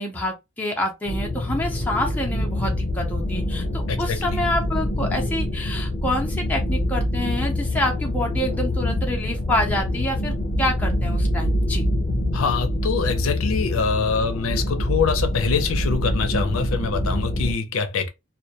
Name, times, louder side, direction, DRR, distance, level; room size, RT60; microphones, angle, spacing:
voice 1, 0.0-11.9, left 1 dB, 10° left, 0.5 m, -27 dB
sound 1, 1.1-17.5, left 1 dB, 50° left, 0.8 m, -25 dB
voice 2, 3.9-4.4 12.3-18.1, left 5 dB, 80° left, 0.5 m, -24 dB
2.2 x 2.1 x 2.7 m
head